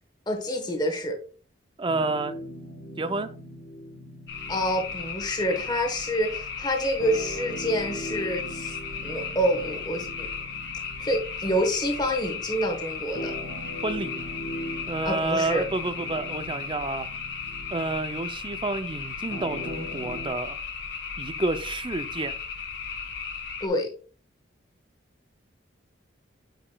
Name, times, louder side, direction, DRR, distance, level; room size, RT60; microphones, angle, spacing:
voice 1, 0.3-1.2 4.5-8.8 9.0-10.3 11.0-13.3 15.0-15.7 23.6-23.9, equal, 20° left, 1.1 m, -27 dB
voice 2, 1.8-2.4 3.0-3.3 13.8-14.2 14.9-17.1 17.7-20.6 21.2-22.3, right 2 dB, 25° right, 0.4 m, -29 dB
sound 1, 1.9-20.3, equal, 90° left, 1.6 m, -41 dB
sound 2, 4.3-23.7, left 6 dB, 60° left, 1.4 m, -35 dB
8.9 x 4.9 x 2.3 m
head